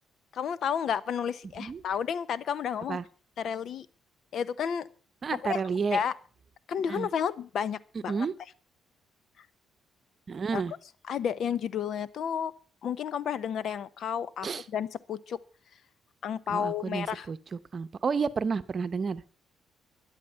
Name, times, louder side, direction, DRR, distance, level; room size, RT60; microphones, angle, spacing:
voice 1, 0.3-3.0 3.4-3.9 4.3-4.9 5.5-5.6 5.9-6.1 6.7-8.3 10.5-10.6 11.1-12.5 12.8-15.4 16.2-17.3, left 8 dB, 65° left, 19 dB, 0.7 m, -31 dB
voice 2, 5.2-6.0 6.9-7.1 8.1-8.3 10.3-10.7 14.4-14.6 16.5-19.3, right 5 dB, 40° right, 14 dB, 0.8 m, -31 dB
13.0 x 11.0 x 5.6 m, 0.40 s
cardioid pair, 90°, 0 cm